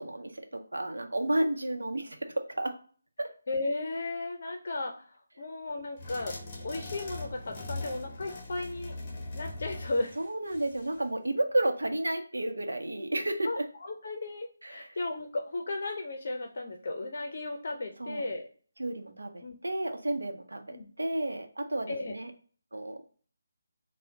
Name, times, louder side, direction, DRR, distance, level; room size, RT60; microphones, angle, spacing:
voice 1, 0.0-2.7 3.2-3.3 5.4-5.5 10.2-13.7 14.6-15.0 18.0-18.3 18.8-22.3 22.7-23.0, right 1 dB, 85° right, 5 dB, 0.7 m, -32 dB
voice 2, 3.5-6.4 6.6-9.0 9.4-10.1 13.4-18.5 19.4-19.5 20.7-20.9 21.9-22.1, left 2 dB, 55° left, 3 dB, 0.5 m, -35 dB
sound 1, 6.0-11.0, left 2 dB, 30° left, 0.8 m, -41 dB
3.7 x 2.1 x 4.4 m, 0.43 s
figure-of-eight pair, 160°, 0 cm